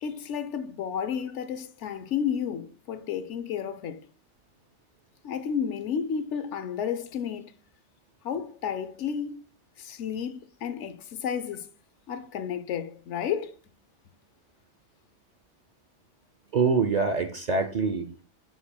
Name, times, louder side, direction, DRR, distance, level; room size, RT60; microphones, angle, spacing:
voice 1, 0.0-4.0 5.2-7.5 8.2-9.4 9.8-11.7 12.1-13.5, left 7 dB, 75° left, 0.9 m, -32 dB
voice 2, 16.5-18.2, right 4 dB, 50° right, 0.5 m, -25 dB
7.4 x 7.1 x 2.2 m
omnidirectional pair, 1.2 m